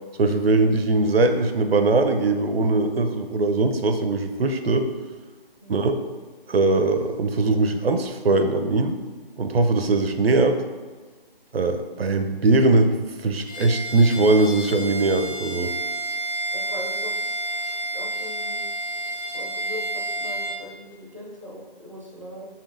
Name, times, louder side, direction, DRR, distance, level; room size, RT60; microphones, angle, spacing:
voice 1, 0.2-4.9 5.7-5.9 6.5-9.0 9.4-10.6 11.5-15.7, right 2 dB, 80° right, 7 dB, 0.6 m, -21 dB
voice 2, 5.6-5.9 16.5-17.1 17.9-18.6 19.3-22.5, left 1 dB, 35° right, -4 dB, 0.4 m, -40 dB
Bowed string instrument, 13.4-20.6, right 1 dB, 40° left, 0.9 m, -30 dB
4.3 x 3.7 x 2.5 m, 1.4 s
figure-of-eight pair, 160°, 29 cm